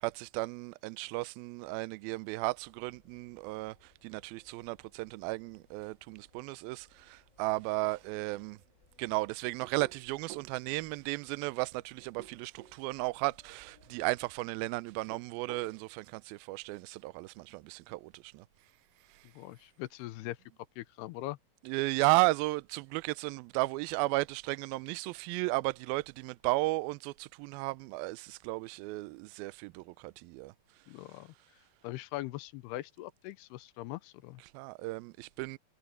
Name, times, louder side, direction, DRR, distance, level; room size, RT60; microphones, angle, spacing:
voice 1, 0.0-8.6 9.0-18.5 19.1-19.3 21.6-30.5 34.4-35.6, right 23 dB, 80° right, 2.2 m, -34 dB
sound 1, 2.4-14.2, left 2 dB, 20° left, 3.2 m, -67 dB
sound 2, 9.6-10.5 12.0-12.8 14.9-15.7, right 11 dB, 65° right, 2.6 m, -49 dB
voice 2, 19.4-20.4 20.8-21.4 30.9-31.3 31.8-34.4, left 17 dB, 80° left, 2.8 m, -41 dB
omnidirectional pair, 4.8 m